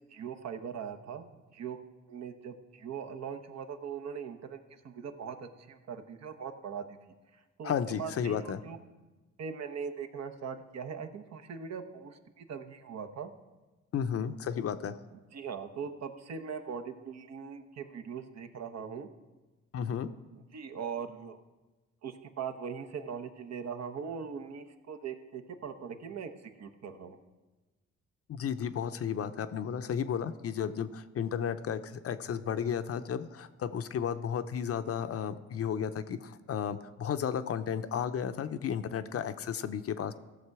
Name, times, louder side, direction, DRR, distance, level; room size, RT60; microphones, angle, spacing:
voice 1, 0.1-1.8 2.1-7.0 7.3-7.7 8.0-8.8 9.4-13.3 15.3-19.1 20.5-21.4 22.0-26.3 26.6-27.2, right 6 dB, 60° right, 7 dB, 1.0 m, -40 dB
voice 2, 7.6-8.6 13.9-15.0 19.7-20.1 28.3-40.1, left 8 dB, 50° left, 11 dB, 0.6 m, -33 dB
15.5 x 6.5 x 4.8 m, 1.2 s
cardioid pair, 90°, 30 cm